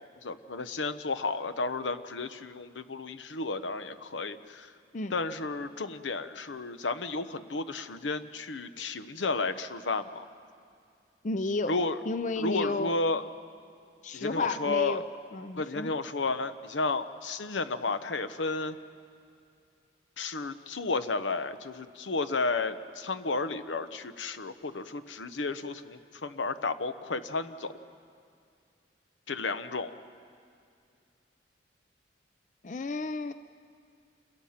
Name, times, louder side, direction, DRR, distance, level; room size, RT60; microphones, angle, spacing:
voice 1, 0.0-4.7 5.1-10.2 11.7-12.0 12.4-13.2 14.1-15.0 15.6-18.8 20.2-27.7 29.3-29.9, left 3 dB, 85° left, 11 dB, 0.9 m, -32 dB
voice 2, 11.2-11.7 12.1-13.0 14.0-15.0 15.3-15.9 32.6-33.3, left 3 dB, 40° left, 11 dB, 0.5 m, -32 dB
28.5 x 21.5 x 5.8 m, 2.4 s
head